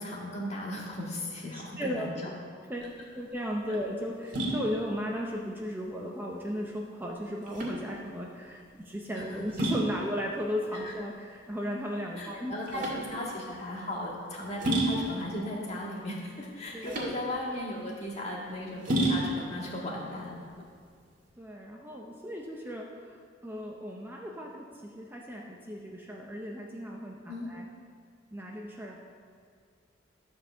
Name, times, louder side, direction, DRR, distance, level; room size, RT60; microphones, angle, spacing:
voice 1, 0.0-2.1 3.7-3.8 9.1-9.5 10.7-10.9 12.1-20.4 27.3-27.5, left 1 dB, 35° left, -3 dB, 1.9 m, -37 dB
voice 2, 1.5-2.1 2.7-12.9 16.7-17.1 21.4-27.6 28.3-29.0, equal, 10° right, -2 dB, 0.7 m, -36 dB
sound 1, 2.7-21.3, right 1 dB, 45° right, 1.9 m, -34 dB
12.5 x 4.4 x 6.8 m, 2.2 s
head